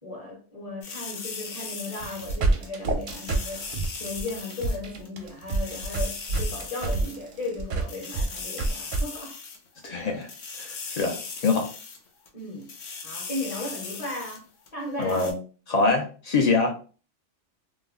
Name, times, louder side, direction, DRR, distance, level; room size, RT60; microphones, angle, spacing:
voice 1, 0.0-3.7 4.0-9.3 12.3-12.7 13.0-14.5 14.7-15.2, left 2 dB, 35° left, 0.8 m, -36 dB
sound 1, 0.8-2.7 3.0-4.8 5.0-5.1 5.4-7.2 7.4-7.5 7.8-9.9 10.2-12.0 12.3-12.4 12.6-14.4 14.7-14.8 15.0-15.3, left 5 dB, 90° left, 1.0 m, -38 dB
sound 2, 2.0-9.0, right 3 dB, 60° right, 0.6 m, -28 dB
voice 2, 9.8-10.3 10.6-11.2 11.4-11.7 15.0-15.3 15.7-16.7, left 3 dB, 65° left, 0.4 m, -24 dB
2.4 x 2.0 x 3.5 m
omnidirectional pair, 1.2 m